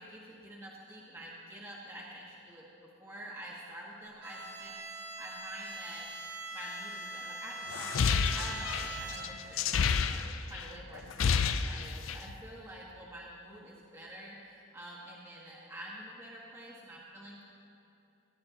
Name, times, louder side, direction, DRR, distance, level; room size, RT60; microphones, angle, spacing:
voice 1, 0.0-2.6 3.0-4.8 5.2-9.6 10.1-17.5, right 1 dB, 15° right, -6 dB, 1.4 m, -47 dB
Bowed string instrument, 4.2-9.6, right 2 dB, 55° right, 1.3 m, -43 dB
sound 1, 7.7-10.6 11.0-12.3, left 6 dB, 90° left, 0.5 m, -29 dB
21.0 x 11.0 x 2.9 m, 2.8 s
head